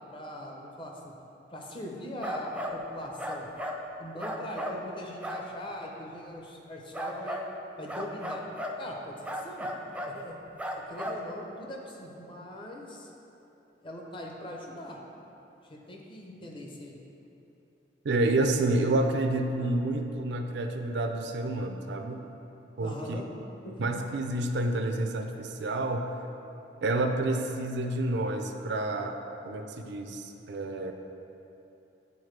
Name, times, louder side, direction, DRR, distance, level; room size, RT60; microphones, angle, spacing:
voice 1, 0.1-1.2 1.5-3.5 4.0-7.4 7.8-8.4 8.8-9.7 10.0-10.3 10.7-13.1 13.8-15.0 15.6-17.0 22.8-23.3 23.6-23.8, left 1 dB, 30° left, -1 dB, 0.7 m, -41 dB
sound 1, 2.2-2.8 3.2-3.8 4.2-4.8 5.2-5.4 6.9-7.5 7.9-8.8 9.2-10.2 10.6-11.2, equal, 5° right, 0.4 m, -35 dB
voice 2, 18.0-22.2 22.8-23.2 23.8-26.1 26.8-29.2 29.4-30.9, right 2 dB, 70° right, 5 dB, 0.5 m, -29 dB
9.5 x 4.3 x 3.2 m, 2.9 s
head